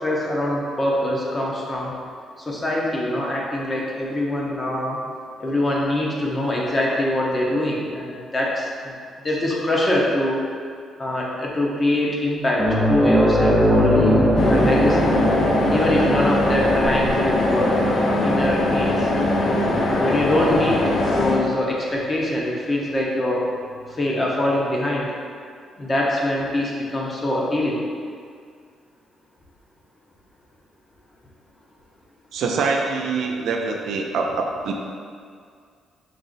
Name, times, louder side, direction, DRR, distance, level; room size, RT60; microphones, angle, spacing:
voice 1, 0.0-2.0 2.4-5.0 5.4-8.9 9.2-10.5 11.0-15.2 15.7-17.8 18.0-19.1 19.7-23.4 24.0-25.1 25.8-27.8, left 1 dB, 30° left, -3 dB, 0.8 m, -23 dB
sound 1, 12.6-21.5 21.9-22.0 24.1-24.2, equal, 5° right, 0.6 m, -22 dB
sound 2, 14.4-21.4, left 1 dB, 60° left, 0.6 m, -21 dB
voice 2, 32.3-34.7, right 4 dB, 75° right, 1 dB, 0.4 m, -24 dB
4.7 x 2.0 x 3.9 m, 2.2 s
cardioid pair, 90°, 0 cm